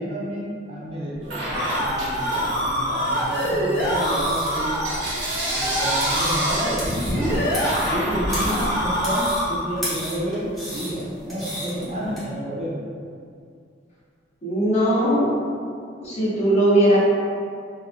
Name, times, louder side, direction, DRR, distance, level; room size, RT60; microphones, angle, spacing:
voice 1, 0.0-1.4 1.8-4.8 5.5-7.4 7.9-12.8, right 1 dB, 30° right, -7 dB, 0.5 m, -30 dB
sound 1, 1.2-9.7, equal, 60° left, 1.2 m, -25 dB
Bell / Coin (dropping), 1.3-2.8 3.2-9.2, right 1 dB, 80° right, 0.7 m, -30 dB
sound 2, 3.8-12.2, equal, ahead, 0.8 m, -35 dB
voice 2, 14.4-15.3 16.0-17.0, right 1 dB, 35° left, -9 dB, 0.8 m, -19 dB
2.9 x 2.1 x 2.4 m, 2.3 s
head